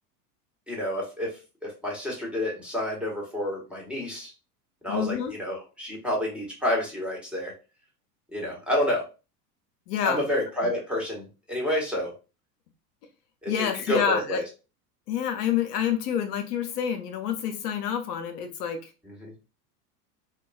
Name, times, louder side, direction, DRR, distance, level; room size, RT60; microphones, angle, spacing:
voice 1, 0.7-1.3 1.6-4.3 4.8-7.5 8.3-9.0 10.0-12.1 13.4-14.4 19.0-19.3, left 1 dB, ahead, -3 dB, 1.3 m, -29 dB
voice 2, 4.9-5.3 9.9-10.2 13.5-14.4 15.1-18.9, left 8 dB, 75° left, 5 dB, 0.8 m, -28 dB
3.9 x 2.3 x 2.3 m, 0.31 s
hypercardioid pair, 100°, 48 cm